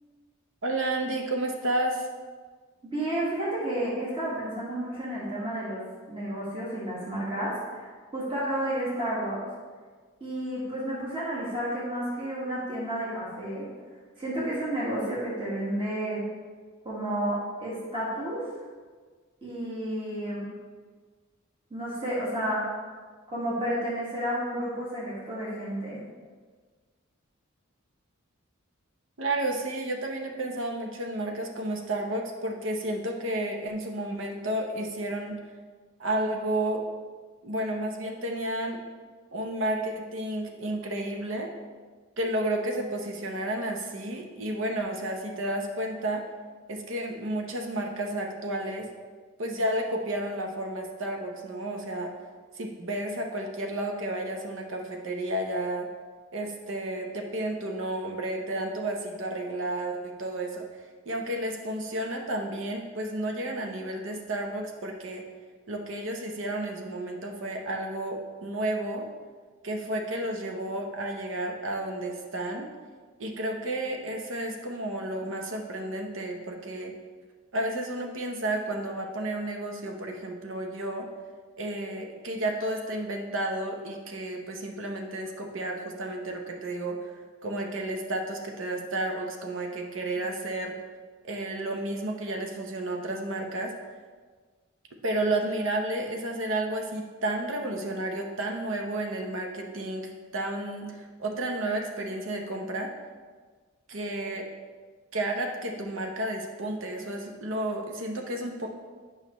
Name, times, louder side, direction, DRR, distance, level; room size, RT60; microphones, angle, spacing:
voice 1, 0.6-2.1 29.2-35.4 36.0-36.8 37.4-38.8 39.3-41.5 42.2-46.2 46.7-48.9 49.4-52.1 52.5-55.9 56.3-60.7 61.1-65.2 65.7-69.1 69.6-72.7 73.2-76.9 77.5-81.1 81.6-90.8 91.2-93.7 95.0-102.9 103.9-104.5 105.1-108.7, right 1 dB, 65° right, 2 dB, 0.8 m, -31 dB
voice 2, 2.8-5.8 6.1-9.4 10.2-13.7 14.2-16.2 16.8-18.5 19.4-20.5 21.7-22.6 23.3-26.0, right 1 dB, 25° right, -7 dB, 1.7 m, -31 dB
8.7 x 5.5 x 3.1 m, 1.5 s
head